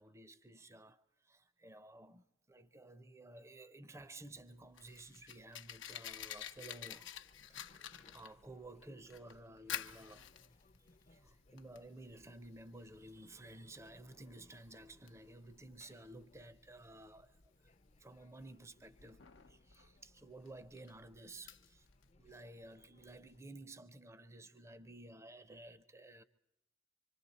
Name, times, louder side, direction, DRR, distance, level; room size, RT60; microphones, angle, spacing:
voice 1, 0.0-7.2 7.5-7.7 8.0-10.3 11.1-17.4 18.0-21.9 22.2-26.2, right 2 dB, 15° right, 0.6 m, -54 dB
Fire, 4.4-22.1, left 10 dB, 70° left, 0.8 m, -51 dB
sound 1, 6.1-23.4, left 2 dB, 35° left, 0.7 m, -69 dB
25.5 x 25.5 x 4.1 m
head